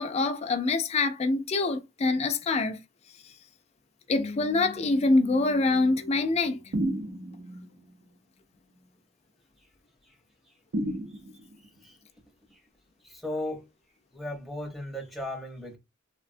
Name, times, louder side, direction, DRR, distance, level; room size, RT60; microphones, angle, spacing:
voice 1, 0.0-2.8 4.1-6.6, left 3 dB, 30° left, 0.3 m, -25 dB
sound 1, 4.2-8.1 8.7-8.9, left 2 dB, 90° left, 0.6 m, -44 dB
sound 2, 6.7-7.6 10.7-11.6, right 1 dB, 65° right, 0.6 m, -31 dB
voice 2, 11.6-12.0 12.5-12.6 13.0-13.7 14.1-15.8, left 1 dB, ahead, 0.7 m, -37 dB
3.3 x 2.1 x 2.5 m
head